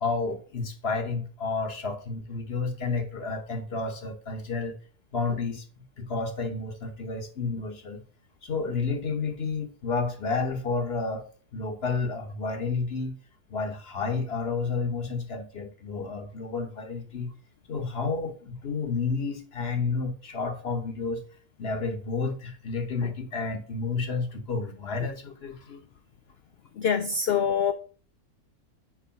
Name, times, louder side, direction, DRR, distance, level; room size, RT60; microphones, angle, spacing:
voice 1, 0.0-4.7 5.1-8.0 8.4-11.2 11.5-13.1 13.5-17.3 17.7-21.2 21.6-25.8, left 4 dB, 45° left, 1.2 m, -31 dB
voice 2, 26.8-27.7, left 7 dB, 80° left, 0.5 m, -24 dB
4.8 x 4.7 x 5.7 m
omnidirectional pair, 1.6 m